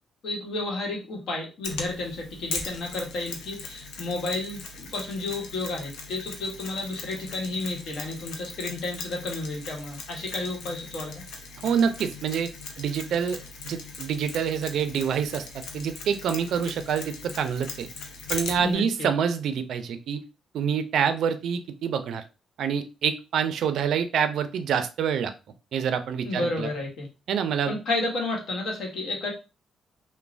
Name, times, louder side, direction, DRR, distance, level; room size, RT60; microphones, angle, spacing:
voice 1, 0.2-11.1 18.6-19.1 26.2-27.1 27.7-29.3, left 2 dB, 65° left, 1 dB, 1.0 m, -31 dB
Mechanisms, 1.6-18.7, left 4 dB, 85° left, 0.5 m, -40 dB
voice 2, 11.6-12.5 12.8-13.4 13.6-15.5 15.7-17.9 18.3-20.2 20.5-22.2 22.6-25.3 25.7-26.7 27.3-27.8, right 7 dB, 70° right, 10 dB, 0.4 m, -26 dB
3.1 x 2.1 x 2.4 m, 0.30 s
cardioid pair, 90°, 0 cm